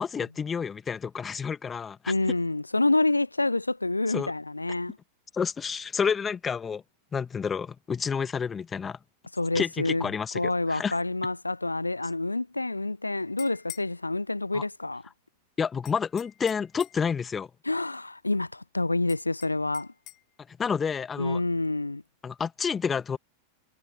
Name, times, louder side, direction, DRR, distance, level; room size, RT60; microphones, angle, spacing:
voice 1, 0.0-2.1 4.1-4.3 5.3-6.8 7.1-9.0 9.5-10.4 10.7-10.9 14.5-14.6 15.6-17.5 20.5-21.4 22.2-23.2, left 6 dB, 20° left, 2.3 m, -29 dB
voice 2, 2.1-5.0 9.3-10.1 10.3-15.0 17.7-19.9 21.2-22.0, left 2 dB, 85° left, 0.4 m, -27 dB
sound 1, 13.2-13.9 15.8-17.1 19.1-20.2, left 16 dB, 35° left, 1.3 m, -45 dB
figure-of-eight pair, 90°, 0 cm